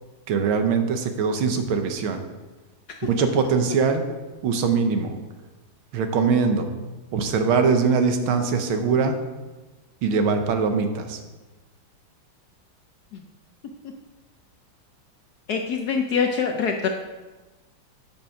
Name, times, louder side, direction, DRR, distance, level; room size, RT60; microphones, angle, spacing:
voice 1, 0.3-2.2 3.0-4.0 4.4-5.2 5.9-6.7 7.1-9.2 10.0-11.2, right 5 dB, 80° right, 7 dB, 1.7 m, -22 dB
voice 2, 15.5-16.9, left 6 dB, 65° left, 3 dB, 1.0 m, -24 dB
8.9 x 5.9 x 5.9 m, 1.2 s
omnidirectional pair, 2.3 m